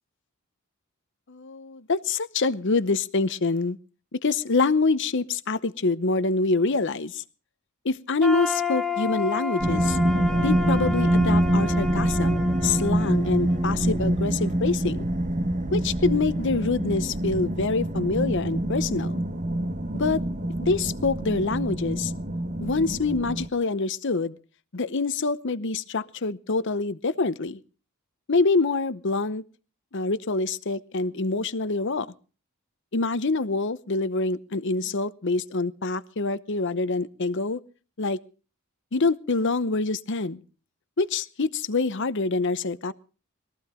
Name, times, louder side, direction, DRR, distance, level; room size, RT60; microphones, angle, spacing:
voice 1, 1.3-3.8 4.1-7.2 7.8-10.0 10.4-15.1 15.7-19.2 19.9-20.2 20.6-22.1 22.6-24.4 24.7-27.6 28.3-29.4 29.9-32.1 32.9-37.6 38.0-38.2 38.9-40.4 41.0-42.9, left 3 dB, 55° left, 15 dB, 0.8 m, -26 dB
sound 1, 8.2-14.1, left 4 dB, ahead, 1.1 m, -31 dB
sound 2, 9.6-23.5, right 1 dB, 35° right, 1.1 m, -25 dB
21.5 x 14.5 x 3.8 m, 0.38 s
head